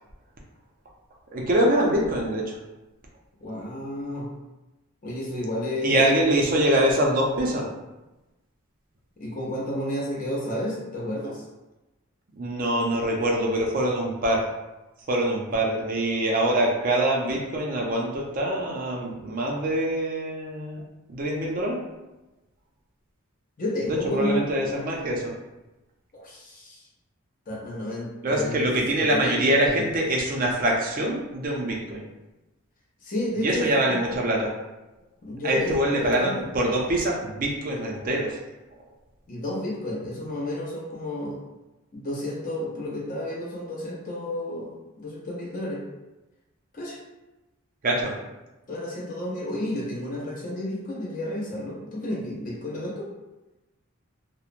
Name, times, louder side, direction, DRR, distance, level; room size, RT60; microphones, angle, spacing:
voice 1, 1.3-2.6 5.8-7.7 12.4-14.4 15.1-20.8 21.1-21.8 24.1-25.3 28.2-32.0 33.4-34.5 35.4-38.4 47.8-48.2, right 1 dB, 40° right, -1 dB, 0.4 m, -24 dB
voice 2, 3.4-4.3 5.0-6.1 9.2-11.4 23.6-24.5 26.1-26.8 27.5-28.7 28.9-29.9 33.0-34.0 35.2-36.4 39.3-41.4 41.9-45.8 46.7-47.0 48.7-53.1, left 1 dB, 40° left, -4 dB, 0.6 m, -31 dB
2.9 x 2.0 x 2.4 m, 1.0 s
head